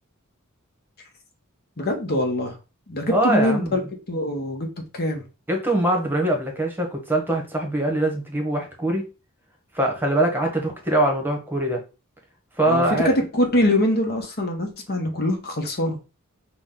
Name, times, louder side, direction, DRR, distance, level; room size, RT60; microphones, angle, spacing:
voice 1, 1.8-2.6 2.9-3.8 4.1-4.7 4.9-5.2 12.7-16.0, left 1 dB, 50° left, 3 dB, 1.0 m, -23 dB
voice 2, 3.1-3.7 5.5-9.0 9.7-11.8 12.6-13.1, right 1 dB, 10° right, 2 dB, 1.0 m, -22 dB
6.0 x 2.2 x 3.7 m, 0.30 s
head